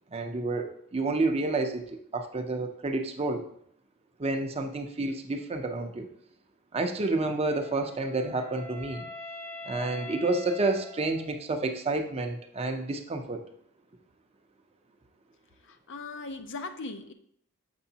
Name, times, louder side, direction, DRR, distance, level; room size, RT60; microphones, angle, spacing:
voice 1, 0.1-3.4 4.2-6.1 6.7-9.1 9.6-13.4, right 2 dB, 30° right, 5 dB, 0.6 m, -29 dB
Wind instrument woodwind instrument, 7.5-11.7, left 2 dB, 40° left, 0.9 m, -44 dB
voice 2, 15.6-17.1, left 3 dB, 60° left, 8 dB, 0.5 m, -39 dB
6.8 x 6.2 x 2.8 m, 0.68 s
head